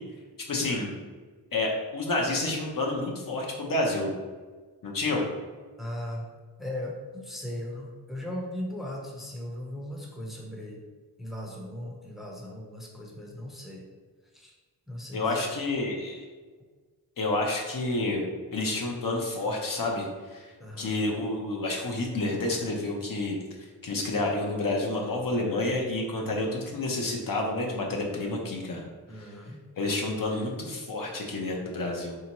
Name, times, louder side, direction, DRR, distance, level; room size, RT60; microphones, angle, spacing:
voice 1, 0.5-0.9 1.5-4.1 4.8-5.2 15.1-16.2 17.2-18.2 18.5-20.5 20.8-23.3 23.8-28.9 29.8-32.2, left 2 dB, 60° left, -1 dB, 0.7 m, -29 dB
voice 2, 5.8-6.3 6.6-10.8 11.2-13.8 14.3-14.5 14.9-15.5 20.6-20.9 29.1-29.6, left 1 dB, ahead, -2 dB, 0.7 m, -38 dB
3.4 x 2.8 x 2.9 m, 1.4 s
wide cardioid pair, 80°, 38 cm